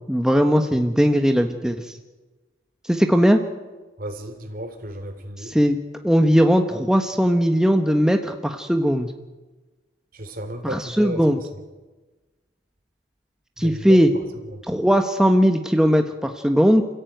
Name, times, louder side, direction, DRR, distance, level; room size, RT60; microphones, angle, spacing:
voice 1, 0.1-2.0 2.8-3.4 5.4-5.8 6.0-9.1 10.6-11.4 13.6-14.1 14.7-16.8, equal, 5° right, 5 dB, 1.1 m, -19 dB
voice 2, 4.0-5.5 10.1-11.2 13.6-14.0 14.5-14.6, right 1 dB, 50° right, 6 dB, 3.4 m, -33 dB
28.5 x 15.5 x 9.2 m, 1.2 s
head